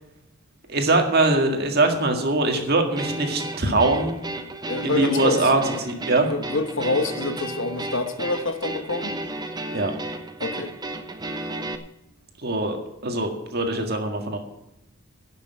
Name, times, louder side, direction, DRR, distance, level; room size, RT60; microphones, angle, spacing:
voice 1, 0.7-4.1 4.8-6.3 9.7-9.9 12.4-12.8 13.0-14.4, right 2 dB, 45° right, 4 dB, 1.9 m, -22 dB
sound 1, 3.0-11.8, right 1 dB, 20° right, 0.8 m, -33 dB
voice 2, 4.7-5.5 6.1-9.1 10.4-10.7, left 3 dB, 60° left, 8 dB, 1.2 m, -27 dB
11.5 x 6.7 x 8.5 m, 0.88 s
head